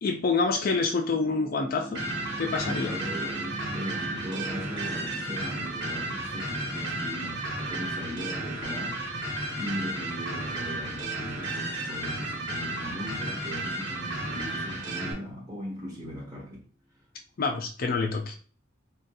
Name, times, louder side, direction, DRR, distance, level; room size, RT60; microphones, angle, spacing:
voice 1, 0.0-2.0 2.4-2.9 6.9-7.1 17.4-18.3, left 4 dB, 45° left, 0.4 m, -27 dB
sound 1, 1.1-15.8, right 1 dB, 40° right, 0.9 m, -46 dB
sound 2, 1.9-15.1, right 1 dB, 65° right, 1.2 m, -33 dB
voice 2, 2.6-9.0 9.6-16.6, equal, 20° right, 1.3 m, -38 dB
4.0 x 2.3 x 2.5 m
head